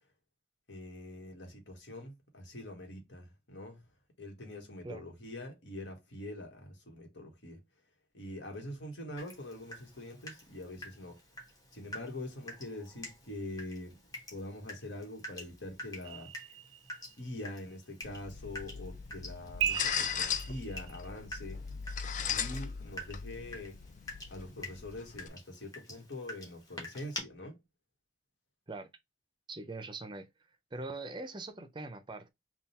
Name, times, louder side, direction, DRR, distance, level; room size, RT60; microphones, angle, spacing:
voice 1, 0.7-3.8 4.2-7.6 8.1-11.2 11.7-14.0 14.3-16.3 17.2-21.6 22.3-23.8 24.3-27.6, left 1 dB, 65° left, 1.4 m, -44 dB
Water tap faucet / Drip, 9.2-27.2, left 1 dB, 20° left, 1.2 m, -48 dB
sound 1, 16.0-17.3 19.6-21.1, right 9 dB, 80° right, 0.3 m, -37 dB
sound 2, 18.0-25.3, left 7 dB, 40° left, 0.3 m, -38 dB
voice 2, 29.5-30.3 30.7-32.3, right 2 dB, 25° right, 0.5 m, -42 dB
3.7 x 2.3 x 4.2 m
head